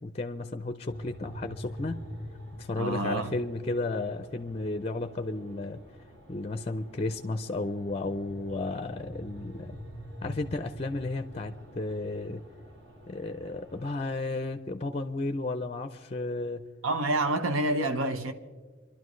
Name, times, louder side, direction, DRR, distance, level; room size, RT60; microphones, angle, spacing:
voice 1, 0.0-2.0 2.6-5.8 6.3-9.8 10.2-12.4 13.1-16.6, left 2 dB, 30° left, 0.4 m, -33 dB
sound 1, 0.9-14.0, equal, 60° right, 2.0 m, -46 dB
voice 2, 2.8-3.3 16.8-18.3, right 1 dB, 85° right, 0.9 m, -28 dB
26.5 x 11.5 x 3.1 m
head